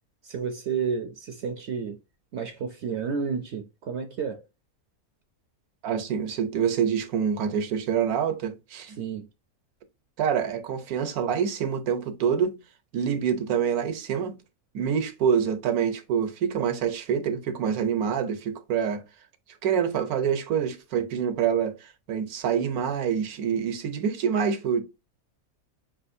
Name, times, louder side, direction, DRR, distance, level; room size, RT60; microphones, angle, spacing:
voice 1, 0.2-2.0 2.3-4.4 9.0-9.3, right 6 dB, 65° right, 0.7 m, -31 dB
voice 2, 5.8-9.0 10.2-12.6 12.9-14.4 14.7-19.0 19.6-24.8, right 7 dB, 85° right, 1.3 m, -26 dB
4.9 x 3.3 x 2.6 m
omnidirectional pair, 1.5 m